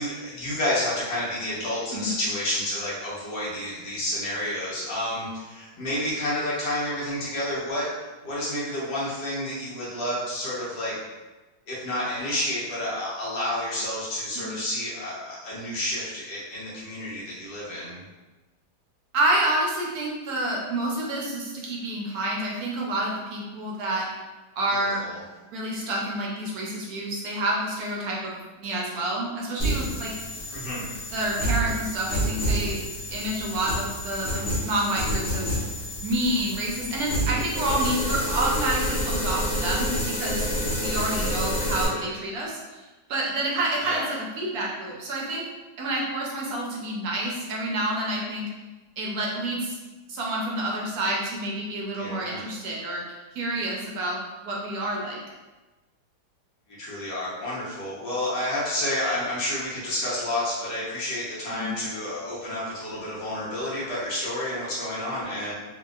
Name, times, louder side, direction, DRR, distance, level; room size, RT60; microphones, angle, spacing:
voice 1, 0.0-7.9 8.2-10.9 11.7-18.0 24.7-25.2 30.5-30.8 41.9-42.1 43.8-44.0 52.0-52.4 56.8-65.5, left 1 dB, 80° left, -8 dB, 1.6 m, -30 dB
voice 2, 19.1-24.1 24.6-25.0 25.5-30.1 31.1-32.8 33.1-35.5 36.0-40.5 40.8-42.8 43.1-45.4 45.8-48.5 49.0-49.8 50.1-55.2 61.5-61.7, right 1 dB, 70° right, -2 dB, 1.1 m, -28 dB
sound 1, 29.6-41.9, equal, 60° left, 1.2 m, -28 dB
3.3 x 2.7 x 2.3 m, 1.2 s
omnidirectional pair, 1.8 m